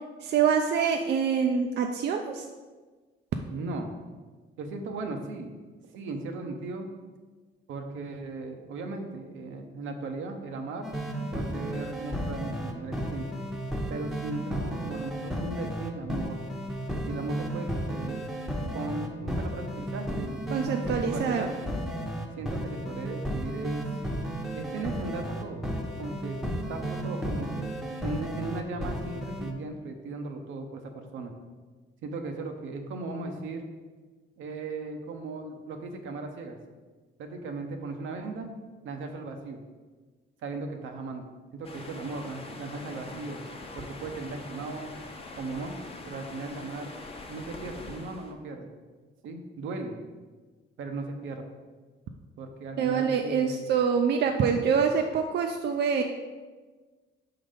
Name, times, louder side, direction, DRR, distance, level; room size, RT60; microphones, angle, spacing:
voice 1, 0.2-2.4 20.5-21.5 52.8-56.0, right 6 dB, 60° right, 4 dB, 0.4 m, -25 dB
voice 2, 3.5-3.9 4.6-5.5 5.9-6.9 7.7-10.9 11.3-13.4 13.9-16.4 17.1-18.2 18.7-21.5 22.4-23.9 24.5-25.6 26.0-26.4 26.7-27.7 28.0-31.3 32.0-33.7 34.4-36.6 37.2-38.5 38.8-39.6 40.4-41.2 41.5-43.4 43.8-44.9 45.3-45.8 46.1-46.9 47.3-48.7 49.2-50.0 50.8-51.5 52.4-53.7 54.5-54.7, right 3 dB, 80° right, 4 dB, 0.8 m, -37 dB
sound 1, 10.8-29.5, right 1 dB, ahead, 0.8 m, -33 dB
sound 2, 41.6-48.3, left 3 dB, 30° left, 0.8 m, -43 dB
5.2 x 3.9 x 5.0 m, 1.4 s
cardioid pair, 90°, 20 cm